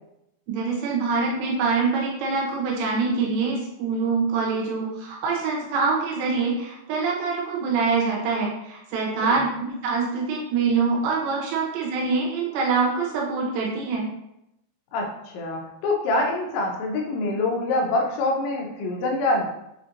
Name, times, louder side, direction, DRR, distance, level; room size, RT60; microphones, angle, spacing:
voice 1, 0.5-14.1, right 4 dB, 80° right, -3 dB, 3.2 m, -25 dB
voice 2, 14.9-19.5, left 2 dB, 90° left, 0 dB, 3.0 m, -25 dB
7.5 x 2.5 x 2.7 m, 0.82 s
omnidirectional pair, 5.1 m